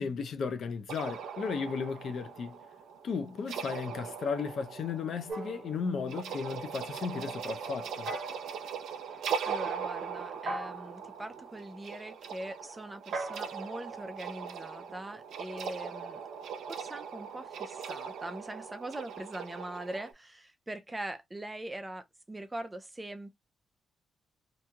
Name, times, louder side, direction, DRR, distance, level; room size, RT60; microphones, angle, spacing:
voice 1, 0.0-2.6 3.0-8.1, left 5 dB, 60° left, 0.6 m, -35 dB
sound 1, 0.9-20.1, right 7 dB, 80° right, 0.6 m, -40 dB
sound 2, 5.3-6.4 8.1-8.7 10.5-11.1 13.1-14.9, right 2 dB, 65° right, 1.1 m, -40 dB
voice 2, 9.1-16.2 16.7-23.4, right 1 dB, 15° right, 0.4 m, -42 dB
2.9 x 2.7 x 2.3 m
cardioid pair, 120°, 0 cm